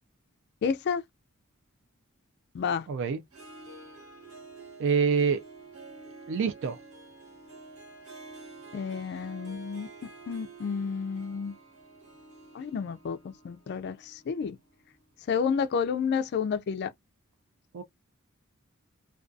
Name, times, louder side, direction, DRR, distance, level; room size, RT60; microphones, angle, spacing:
voice 1, 0.6-1.0 2.5-2.9 8.7-9.9 10.3-11.5 12.5-13.2 13.4-14.5 15.3-16.9, left 6 dB, 50° left, 0.3 m, -30 dB
voice 2, 2.9-3.2 4.8-5.4 6.3-6.8 17.7-17.8, right 5 dB, 60° right, 0.3 m, -26 dB
Harp, 3.2-15.1, right 3 dB, 85° right, 1.2 m, -49 dB
2.5 x 2.2 x 2.3 m
head